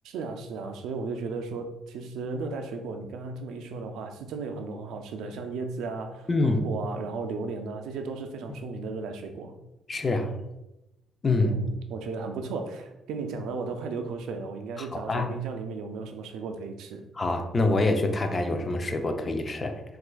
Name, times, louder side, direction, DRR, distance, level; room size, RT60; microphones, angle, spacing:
voice 1, 0.0-9.6 11.4-17.0, right 4 dB, 85° right, 5 dB, 0.3 m, -35 dB
voice 2, 6.3-6.6 9.9-10.3 11.2-11.6 14.8-15.3 17.1-19.8, left 2 dB, 35° left, 6 dB, 0.4 m, -26 dB
4.3 x 2.4 x 2.2 m, 0.94 s
cardioid pair, 90°, 0 cm